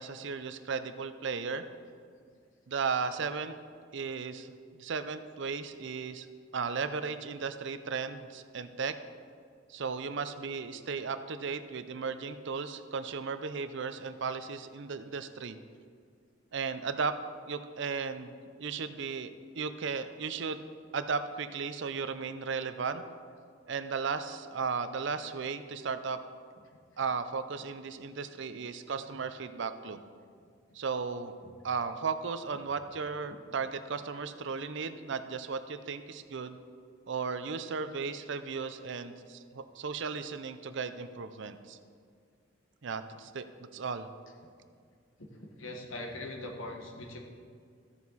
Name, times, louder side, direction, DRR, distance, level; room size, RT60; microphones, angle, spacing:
voice 1, 0.0-1.6 2.7-3.6 3.9-6.3 6.5-8.9 9.7-15.6 16.5-17.2 17.5-20.6 20.9-23.0 23.7-26.2 27.0-30.0 30.7-31.4 31.6-36.6 37.1-41.8 42.8-43.5 43.7-44.1, right 5 dB, 65° right, 11 dB, 0.6 m, -35 dB
voice 2, 45.4-47.2, left 2 dB, 85° left, 2 dB, 1.5 m, -41 dB
14.0 x 7.1 x 4.1 m, 2.1 s
head